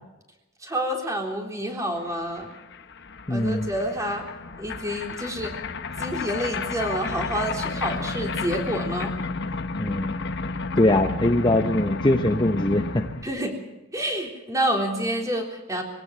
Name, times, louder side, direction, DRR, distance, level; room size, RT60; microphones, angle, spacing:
voice 1, 0.6-2.5 3.3-4.2 4.6-5.5 6.0-9.1 13.2-13.6 13.9-15.8, equal, 15° right, 1 dB, 3.8 m, -28 dB
sound 1, 2.1-2.2 2.4-13.2, left 3 dB, 50° left, 1.2 m, -31 dB
voice 2, 3.3-3.7 9.8-10.1 10.8-13.0, left 1 dB, 20° left, 5 dB, 0.8 m, -22 dB
23.0 x 18.0 x 7.5 m, 1.0 s
head